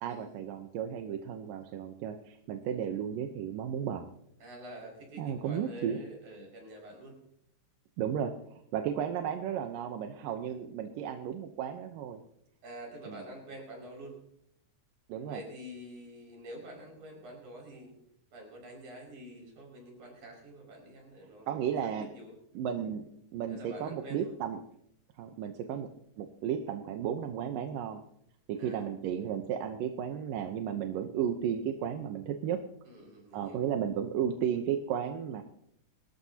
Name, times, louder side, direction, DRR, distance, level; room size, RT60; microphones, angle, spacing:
voice 1, 0.0-4.1 5.2-6.0 8.0-12.2 13.1-13.2 15.1-15.4 21.5-22.1 22.6-23.1 23.3-24.6 25.2-25.9 26.2-28.0 28.5-32.6 33.3-35.4, right 8 dB, 80° right, 5 dB, 2.6 m, -34 dB
voice 2, 4.4-7.2 12.6-14.2 15.2-17.9 18.3-22.3 23.5-24.4 25.7-25.8 28.6-28.9 32.9-33.6, right 1 dB, 60° right, 0 dB, 7.3 m, -47 dB
30.0 x 14.5 x 2.9 m, 0.75 s
omnidirectional pair, 3.9 m